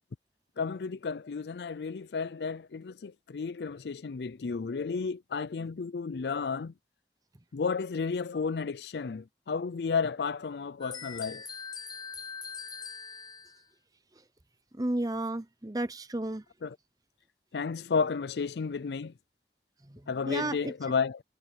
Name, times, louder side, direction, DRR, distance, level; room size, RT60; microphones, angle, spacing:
voice 1, 0.6-6.7 7.5-11.4 16.6-16.8 17.5-19.1 20.1-21.2, left 5 dB, 75° left, 0.4 m, -32 dB
sound 1, 10.8-13.6, left 5 dB, 25° left, 5.1 m, -42 dB
voice 2, 14.8-16.4 20.3-20.7, right 1 dB, 20° right, 0.9 m, -32 dB
head